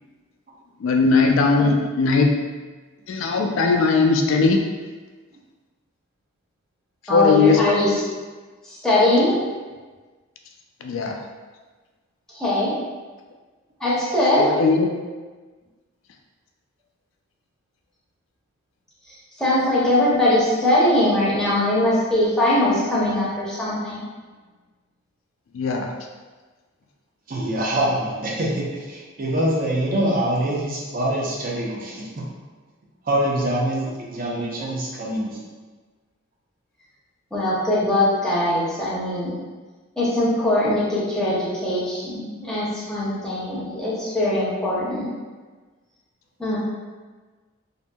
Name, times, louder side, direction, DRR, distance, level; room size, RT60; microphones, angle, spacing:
voice 1, 0.8-2.3 3.1-4.7 7.1-7.6 10.8-11.2 14.4-15.0 25.5-25.9, left 4 dB, 65° left, 2 dB, 0.3 m, -19 dB
voice 2, 7.1-8.0 8.6-9.3 12.3-12.7 13.8-14.5 19.4-24.0 37.3-39.3 40.0-45.1 46.4-46.6, left 1 dB, 5° left, -9 dB, 0.6 m, -21 dB
voice 3, 27.3-32.2 33.1-35.4 43.8-43.9, right 1 dB, 40° right, -3 dB, 0.5 m, -24 dB
2.7 x 2.5 x 2.2 m, 1.4 s
head